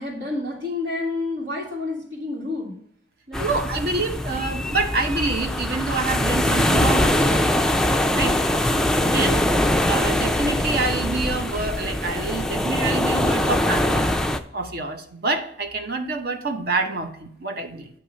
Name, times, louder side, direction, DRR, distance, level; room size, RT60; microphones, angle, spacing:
voice 1, 0.0-2.8 3.3-3.5 8.1-8.4, left 2 dB, 80° right, -8 dB, 2.1 m, -29 dB
sound 1, 3.3-14.4, left 1 dB, 5° left, 0.3 m, -22 dB
voice 2, 3.4-7.4 8.2-8.4 9.0-9.5 9.9-14.1 14.5-17.9, right 3 dB, 60° right, 6 dB, 0.9 m, -27 dB
8.8 x 3.0 x 6.2 m, 0.70 s
head